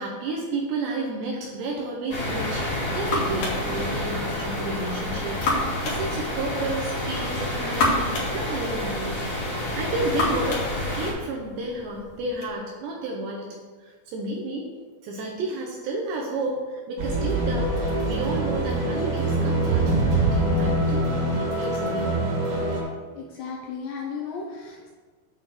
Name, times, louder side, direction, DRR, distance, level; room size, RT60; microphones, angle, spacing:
voice 1, 0.0-2.7 2.9-8.0 8.3-14.7 15.0-19.9 20.2-22.3, right 2 dB, 75° right, -1 dB, 2.7 m, -32 dB
sound 1, 2.1-11.1, left 1 dB, 30° left, 1.8 m, -29 dB
sound 2, 2.4-12.5, left 2 dB, 55° left, 2.2 m, -32 dB
sound 3, 17.0-22.8, right 2 dB, 50° right, 3.3 m, -24 dB
voice 2, 23.2-24.9, left 5 dB, 75° left, -1 dB, 2.6 m, -35 dB
9.1 x 3.8 x 6.5 m, 1.4 s
omnidirectional pair, 5.8 m